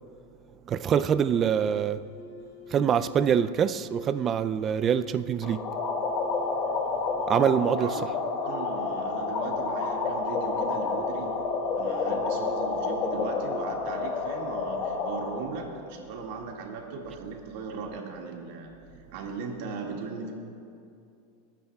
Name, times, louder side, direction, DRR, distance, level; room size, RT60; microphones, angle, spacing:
voice 1, 0.7-2.0 2.7-5.6 7.3-8.0, right 8 dB, 30° right, 0.4 m, -25 dB
sound 1, 0.9-13.7, right 4 dB, 75° left, 2.9 m, -45 dB
sound 2, 5.4-15.4, left 4 dB, 40° left, 1.5 m, -30 dB
voice 2, 8.4-11.3 11.7-18.7 19.1-20.3, right 4 dB, 65° right, 2.0 m, -38 dB
28.0 x 9.8 x 2.4 m
supercardioid pair, 125°, 0 cm